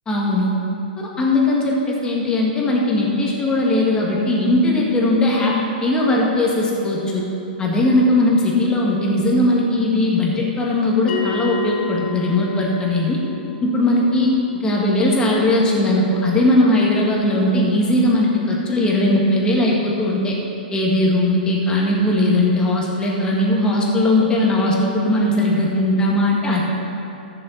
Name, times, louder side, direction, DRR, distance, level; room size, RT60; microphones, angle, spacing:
voice 1, 0.1-0.5 1.2-5.5 5.8-7.2 7.6-13.2 13.6-14.3 14.6-20.4 20.7-26.6, left 1 dB, 15° left, -3 dB, 1.9 m, -18 dB
Bell, 11.1-16.1, left 4 dB, 65° left, 1.4 m, -32 dB
14.0 x 6.9 x 4.1 m, 2.9 s
hypercardioid pair, 130°, 5 cm